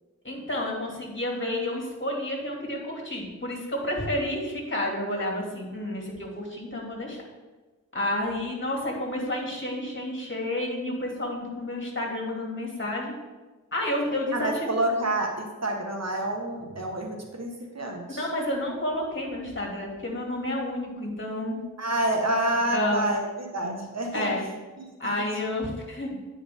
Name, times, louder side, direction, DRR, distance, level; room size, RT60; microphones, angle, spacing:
voice 1, 0.2-7.2 7.9-13.1 13.7-14.7 18.2-21.6 22.7-23.1 24.1-24.4 25.0-26.2, left 1 dB, 35° left, -1 dB, 2.4 m, -30 dB
voice 2, 14.3-18.3 21.8-24.3 25.0-25.3, right 1 dB, 55° right, 2 dB, 1.4 m, -28 dB
9.6 x 5.0 x 3.6 m, 1.2 s
cardioid pair, 45°, 32 cm